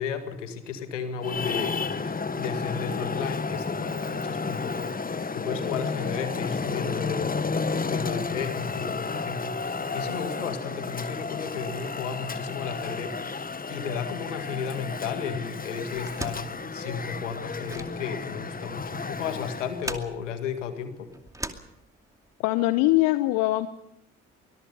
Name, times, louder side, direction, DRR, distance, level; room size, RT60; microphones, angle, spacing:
voice 1, 0.0-7.5 7.7-21.1, left 6 dB, 85° left, 8 dB, 2.0 m, -34 dB
Traffic noise roadway noise, 1.2-19.9, left 4 dB, 25° left, 1.4 m, -32 dB
sound 1, 15.9-22.3, right 1 dB, 10° right, 2.5 m, -41 dB
voice 2, 22.4-23.7, left 18 dB, 70° left, 14 dB, 0.9 m, -22 dB
24.0 x 21.5 x 5.5 m, 0.82 s
hypercardioid pair, 45°, 36 cm